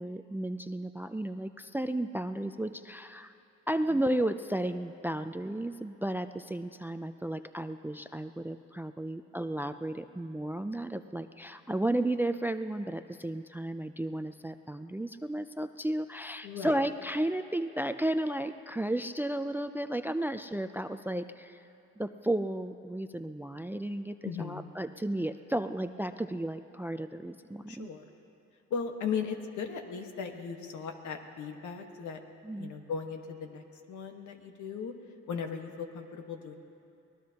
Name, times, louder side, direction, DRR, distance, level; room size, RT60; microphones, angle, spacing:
voice 1, 0.0-3.3 3.7-21.6 22.0-27.9 32.4-32.7, right 1 dB, 5° right, 10 dB, 0.4 m, -33 dB
voice 2, 16.4-16.8 24.2-24.7 27.7-28.0 28.7-32.2 32.5-34.9 35.3-36.6, left 6 dB, 75° left, 4 dB, 1.4 m, -37 dB
24.0 x 19.0 x 2.9 m, 2.6 s
cardioid pair, 90°, 30 cm